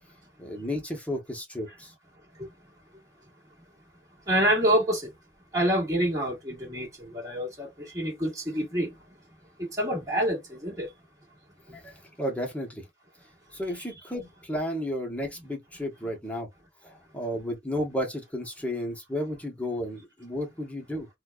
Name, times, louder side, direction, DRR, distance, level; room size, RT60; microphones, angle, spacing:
voice 1, 0.4-1.9 11.7-12.8 13.5-16.5 16.8-21.1, equal, 10° left, 1.0 m, -33 dB
voice 2, 4.3-5.1 5.5-9.1 9.6-10.9 11.7-11.8, right 1 dB, 20° right, 1.8 m, -27 dB
4.3 x 2.3 x 2.4 m
head